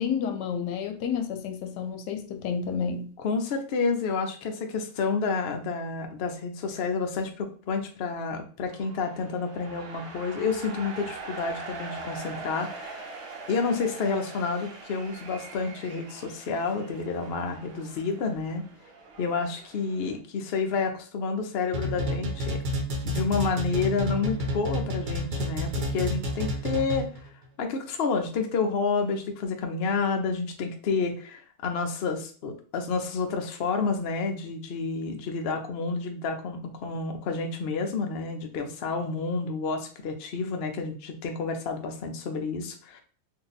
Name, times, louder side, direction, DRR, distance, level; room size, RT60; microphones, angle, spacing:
voice 1, 0.0-3.1, left 7 dB, 85° left, 1.2 m, -30 dB
voice 2, 3.2-13.1 13.5-18.6 19.2-22.6 23.0-27.1 27.6-43.0, left 4 dB, 70° left, 0.5 m, -29 dB
sound 1, 8.6-20.2, right 3 dB, 55° right, 1.0 m, -42 dB
sound 2, 21.7-27.3, left 1 dB, 80° right, 1.4 m, -29 dB
2.8 x 2.7 x 4.0 m
omnidirectional pair, 1.8 m